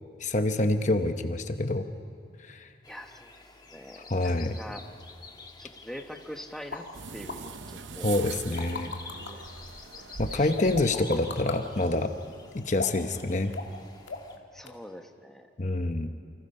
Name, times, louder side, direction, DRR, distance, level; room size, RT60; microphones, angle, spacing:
voice 1, 0.2-1.9 2.4-2.7 4.1-4.6 8.0-8.9 10.2-12.1 12.5-13.5 15.6-16.1, left 2 dB, 40° left, 7 dB, 0.9 m, -27 dB
sound 1, 2.8-14.4, left 4 dB, 20° left, 1.6 m, -50 dB
voice 2, 2.9-4.3 4.6-4.8 5.6-6.9 7.1-8.4 9.3-9.5 10.3-10.5 14.5-15.5, equal, ahead, 4 dB, 1.1 m, -44 dB
sound 2, 6.7-6.8 7.3-7.4 8.3-9.3 10.6-11.6 12.7-13.1 13.5-13.8 14.1-14.4 14.7-14.8, left 4 dB, 75° left, 2.2 m, -36 dB
sound 3, 6.9-12.1, right 5 dB, 80° right, 0.8 m, -43 dB
28.5 x 25.5 x 5.5 m, 2.3 s
head